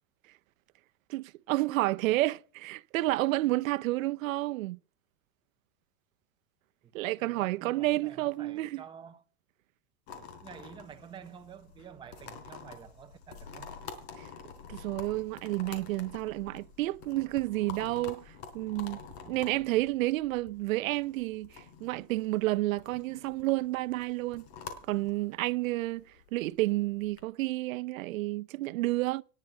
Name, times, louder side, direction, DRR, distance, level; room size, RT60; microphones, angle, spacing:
voice 1, 1.1-4.8 6.9-8.8 14.2-14.3 14.7-19.0 19.3-24.4 24.9-26.0 26.3-29.2, right 18 dB, 80° right, 0.7 m, -30 dB
voice 2, 6.8-9.2 10.4-13.8, right 8 dB, 10° right, 0.9 m, -49 dB
sound 1, 10.1-27.2, left 6 dB, 55° left, 4.3 m, -48 dB
19.5 x 7.5 x 6.6 m
supercardioid pair, 165°, 39 cm